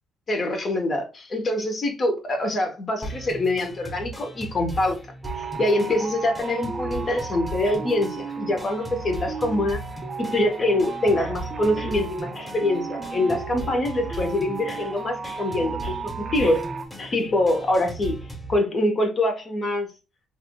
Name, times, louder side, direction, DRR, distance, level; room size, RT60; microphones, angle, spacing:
voice 1, 0.3-5.0 5.3-9.8 10.2-16.7 17.0-18.2 18.5-19.9, left 1 dB, 45° left, 1.0 m, -24 dB
sound 1, 3.0-18.6, right 2 dB, 10° left, 1.1 m, -38 dB
sound 2, 5.2-16.9, right 4 dB, 45° right, 0.4 m, -35 dB
3.5 x 2.5 x 2.2 m
supercardioid pair, 60°, 0 cm